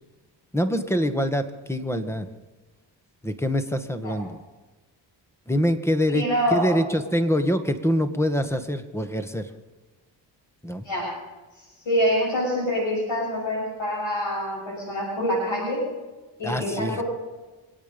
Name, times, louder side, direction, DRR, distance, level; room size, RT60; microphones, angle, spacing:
voice 1, 0.5-2.3 3.2-4.4 5.5-9.5 10.6-10.9 16.4-17.0, equal, 5° left, 8 dB, 1.7 m, -25 dB
voice 2, 6.1-6.8 10.8-11.1 11.9-15.8 16.4-17.0, equal, 70° left, -3 dB, 7.1 m, -25 dB
26.5 x 9.0 x 5.4 m, 1.2 s
supercardioid pair, 45°, 46 cm